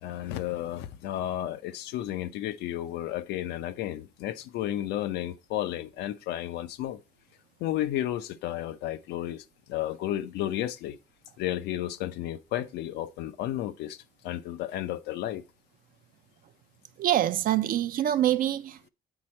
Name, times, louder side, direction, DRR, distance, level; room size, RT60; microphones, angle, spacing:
voice 1, 0.0-7.0 7.6-11.0 11.4-15.4, left 13 dB, 85° left, 0.6 m, -32 dB
voice 2, 17.0-18.9, right 12 dB, 55° right, 0.5 m, -25 dB
8.1 x 4.2 x 4.3 m
cardioid pair, 110°, 17 cm